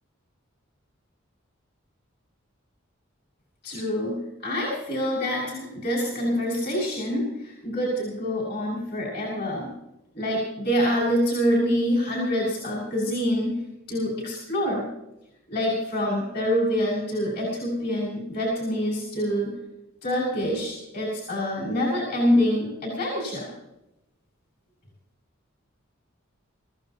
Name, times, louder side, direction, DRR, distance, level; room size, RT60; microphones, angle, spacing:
voice 1, 3.6-9.7 10.1-13.6 13.9-14.9 15.5-19.5 20.0-23.5, equal, 50° left, -4 dB, 6.5 m, -26 dB
25.5 x 15.5 x 3.0 m, 0.88 s
head